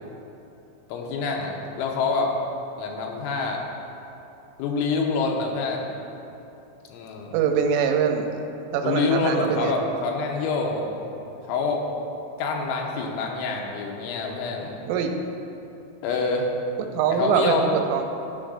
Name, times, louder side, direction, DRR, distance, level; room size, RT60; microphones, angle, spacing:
voice 1, 0.9-2.3 2.8-3.6 4.6-5.9 6.9-7.4 8.8-11.1 11.5-11.8 12.4-14.8 16.0-16.5 17.1-17.7, left 4 dB, 85° left, 0 dB, 3.0 m, -26 dB
voice 2, 7.3-8.3 8.7-9.7 14.9-15.1 16.9-18.0, right 7 dB, 85° right, 4 dB, 3.0 m, -23 dB
13.0 x 5.4 x 2.5 m, 2.8 s
omnidirectional pair, 5.6 m